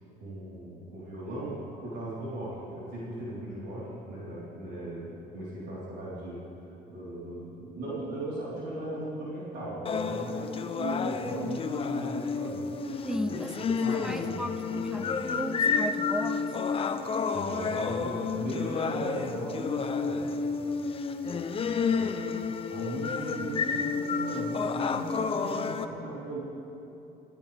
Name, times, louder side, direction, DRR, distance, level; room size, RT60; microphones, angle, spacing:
voice 1, 0.2-6.4 6.9-12.7 13.1-13.2 13.8-14.9 17.3-20.2 20.6-20.9 21.2-22.1 22.7-26.4, right 1 dB, 90° right, -9 dB, 4.4 m, -38 dB
sound 1, 9.9-25.8, left 5 dB, 35° left, 0.7 m, -30 dB
sound 2, 12.9-20.3, right 1 dB, 55° right, 3.9 m, -48 dB
voice 2, 13.0-16.4, equal, 5° right, 9 dB, 0.7 m, -36 dB
22.5 x 14.0 x 3.6 m, 2.9 s
cardioid pair, 110°, 17 cm